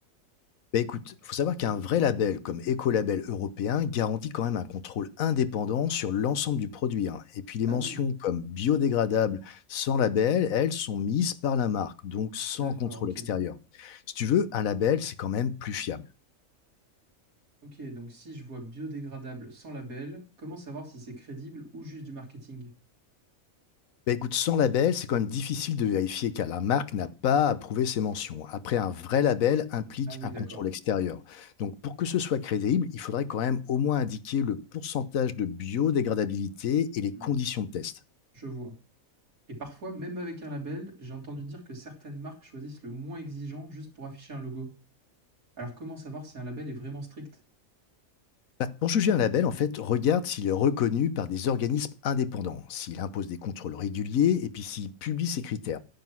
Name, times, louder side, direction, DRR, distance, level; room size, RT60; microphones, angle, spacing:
voice 1, 0.7-16.0 24.1-37.9 48.6-55.8, left 8 dB, 75° left, 1.3 m, -28 dB
voice 2, 7.7-8.0 12.5-13.3 17.7-22.7 30.1-30.7 37.1-37.4 38.3-38.7 39.5-44.7 45.6-47.3, right 1 dB, 85° right, 3.6 m, -40 dB
10.5 x 7.7 x 6.1 m
omnidirectional pair, 1.5 m